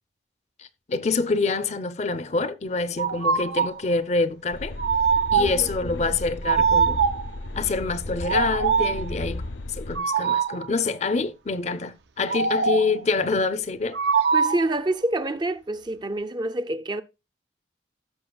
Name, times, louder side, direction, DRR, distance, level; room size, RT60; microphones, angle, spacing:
voice 1, 0.6-4.8 5.3-7.0 7.5-9.4 9.7-14.0, left 3 dB, 35° left, 0.5 m, -26 dB
sound 1, 3.0-3.8 4.8-5.7 6.4-7.3 8.2-9.1 9.9-10.7 12.3-13.0 13.9-14.7, right 6 dB, 70° right, 0.6 m, -23 dB
sound 2, 4.5-10.0, left 2 dB, 80° left, 0.6 m, -34 dB
voice 2, 5.4-5.7 14.3-17.0, right 2 dB, 25° right, 0.4 m, -27 dB
15.5 x 6.4 x 2.3 m
head